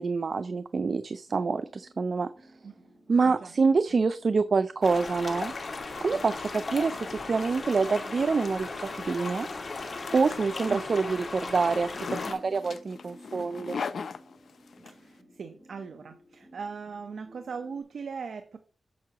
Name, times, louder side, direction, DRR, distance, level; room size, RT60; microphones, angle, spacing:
voice 1, 0.0-2.5 3.1-5.5 6.0-9.5 10.1-13.8, right 4 dB, 55° right, 13 dB, 0.5 m, -26 dB
sound 1, 1.3-17.8, equal, 5° right, 2.9 m, -56 dB
sound 2, 4.8-12.3, left 3 dB, 50° left, 1.8 m, -37 dB
Zipper (clothing), 6.4-14.9, left 5 dB, 70° left, 0.6 m, -41 dB
voice 2, 14.8-18.6, right 5 dB, 70° right, 8 dB, 0.9 m, -39 dB
9.4 x 7.1 x 3.0 m, 0.35 s
wide cardioid pair, 90°, 0 cm